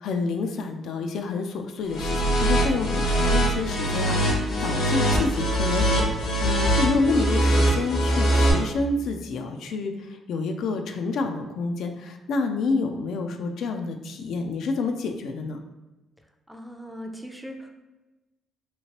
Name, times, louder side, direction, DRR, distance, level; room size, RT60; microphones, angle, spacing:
voice 1, 0.0-6.0 6.4-9.9 10.3-15.6, left 3 dB, 75° left, 5 dB, 0.3 m, -28 dB
sound 1, 1.9-8.5, right 1 dB, 90° left, 0.9 m, -22 dB
voice 2, 16.5-17.7, equal, ahead, 3 dB, 0.4 m, -39 dB
3.0 x 2.8 x 2.8 m, 1.1 s
cardioid pair, 90°, 0 cm